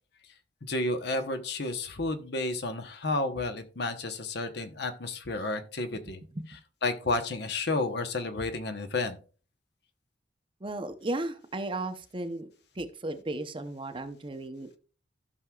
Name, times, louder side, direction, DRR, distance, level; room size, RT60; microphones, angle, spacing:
voice 1, 0.6-6.2 6.8-9.2, left 2 dB, 60° left, 8 dB, 1.0 m, -31 dB
voice 2, 10.6-12.5 12.8-14.8, right 2 dB, 30° right, 9 dB, 0.7 m, -35 dB
15.0 x 6.0 x 2.3 m, 0.37 s
head